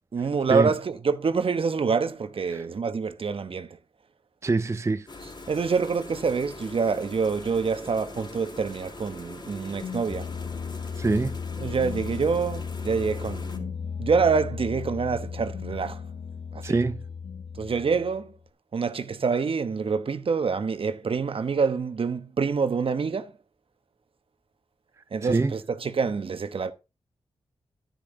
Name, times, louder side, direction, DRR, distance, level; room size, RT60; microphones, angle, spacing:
voice 1, 0.1-3.8 5.5-10.3 11.6-16.0 16.5-16.8 17.6-18.3 18.7-23.3 25.1-26.7, right 5 dB, 60° right, 1.0 m, -26 dB
voice 2, 4.4-5.1 11.0-11.4 16.6-17.0 25.2-25.6, right 3 dB, 30° right, 0.5 m, -24 dB
sound 1, 5.1-13.6, left 3 dB, 45° left, 3.2 m, -42 dB
sound 2, 9.6-18.4, left 6 dB, 80° left, 1.0 m, -35 dB
10.0 x 9.8 x 3.9 m
cardioid pair, 55°, 10 cm